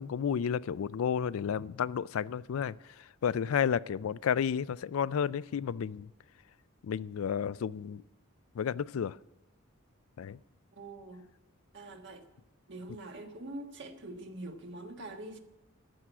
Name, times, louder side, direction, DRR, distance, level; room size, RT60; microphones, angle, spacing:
voice 1, 0.0-6.1 6.8-8.0 8.5-9.2 10.2-10.4, left 7 dB, 80° left, 19 dB, 0.4 m, -32 dB
voice 2, 10.7-11.2 11.7-12.2 12.7-15.4, right 2 dB, 55° right, 5 dB, 1.4 m, -44 dB
14.0 x 6.2 x 10.0 m, 0.96 s
head